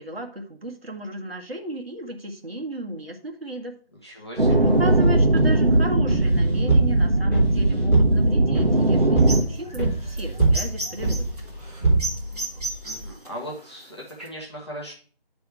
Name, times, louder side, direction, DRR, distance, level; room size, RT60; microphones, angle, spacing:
voice 1, 0.0-3.7 4.1-4.2 4.5-11.3, right 1 dB, 75° right, 2 dB, 1.5 m, -34 dB
voice 2, 4.0-4.8 12.8-14.9, equal, 25° left, -5 dB, 1.0 m, -38 dB
sound 1, 4.4-13.1, right 3 dB, 15° right, 2.5 m, -24 dB
sound 2, 4.4-9.4, right 2 dB, 60° right, 1.4 m, -19 dB
sound 3, 9.2-14.3, right 2 dB, 40° right, 1.6 m, -34 dB
9.1 x 3.5 x 4.6 m, 0.42 s
figure-of-eight pair, 170°, 30 cm